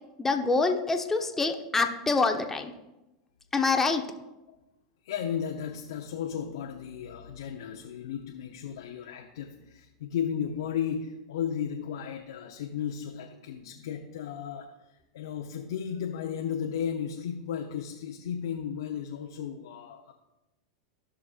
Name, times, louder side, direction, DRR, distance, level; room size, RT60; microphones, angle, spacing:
voice 1, 0.2-2.7 3.5-4.0, left 3 dB, 15° left, 5 dB, 0.9 m, -26 dB
voice 2, 5.0-14.7 15.1-20.1, left 8 dB, 70° left, 1 dB, 0.8 m, -34 dB
15.5 x 6.2 x 2.5 m, 1.0 s
hypercardioid pair, 100°, 2 cm